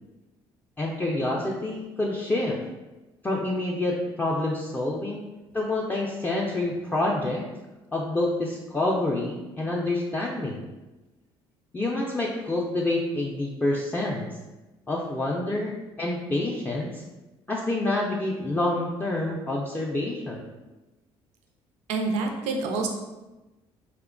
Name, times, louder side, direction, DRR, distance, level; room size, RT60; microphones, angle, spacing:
voice 1, 0.8-2.6 3.2-5.2 5.5-7.5 7.9-10.6 11.7-14.3 14.9-17.0 17.5-20.5, left 2 dB, 15° left, -4 dB, 0.4 m, -27 dB
voice 2, 21.9-22.9, right 3 dB, 75° right, 3 dB, 0.4 m, -27 dB
2.8 x 2.1 x 2.4 m, 1.1 s
supercardioid pair, 65°, 12 cm